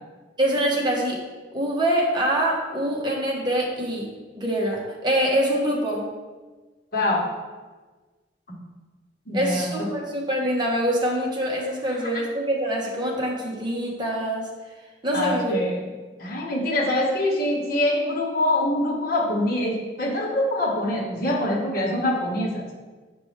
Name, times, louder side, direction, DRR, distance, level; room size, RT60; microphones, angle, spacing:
voice 1, 0.4-1.2 1.5-4.1 4.4-6.0 9.3-14.5 15.0-15.5, right 1 dB, 25° right, -2 dB, 1.2 m, -24 dB
voice 2, 6.9-7.3 8.5-8.6 9.3-9.9 11.9-12.2 15.1-15.8 16.2-22.7, left 1 dB, 55° left, -2 dB, 1.3 m, -24 dB
6.6 x 5.1 x 3.2 m, 1.3 s
head